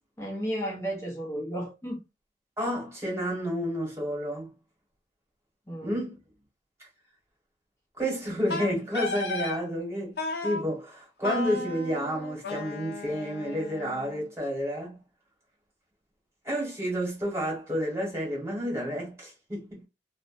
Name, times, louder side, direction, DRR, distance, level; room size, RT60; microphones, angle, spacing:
voice 1, 0.2-2.0 5.7-5.9, equal, 15° left, 0.6 m, -33 dB
voice 2, 2.6-4.5 5.8-6.1 8.0-15.0 16.4-19.8, equal, 15° right, 1.2 m, -30 dB
Wind instrument woodwind instrument, 8.5-9.6 10.2-10.6 11.2-14.2, left 2 dB, 60° left, 0.6 m, -34 dB
2.5 x 2.1 x 2.5 m
head